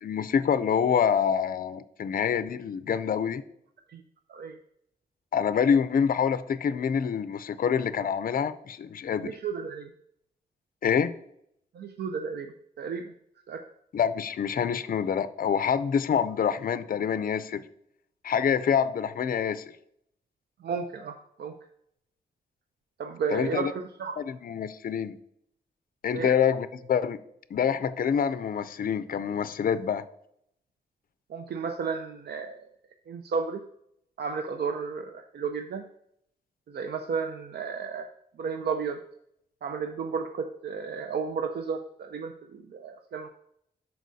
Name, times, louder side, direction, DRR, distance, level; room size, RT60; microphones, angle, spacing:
voice 1, 0.0-3.4 5.3-9.3 10.8-11.1 13.9-17.6 18.2-19.6 23.3-23.7 24.2-25.2 26.0-27.2 27.5-30.0, left 7 dB, 60° left, 13 dB, 0.4 m, -26 dB
voice 2, 9.2-9.9 11.7-13.1 13.5-13.6 20.6-21.5 23.0-24.2 26.1-26.3 31.3-32.7 33.1-33.6 34.2-35.8 36.7-38.1 38.4-39.0 39.6-43.3, right 5 dB, 85° right, 7 dB, 0.5 m, -33 dB
12.5 x 4.6 x 2.7 m, 0.72 s
wide cardioid pair, 135°, 16 cm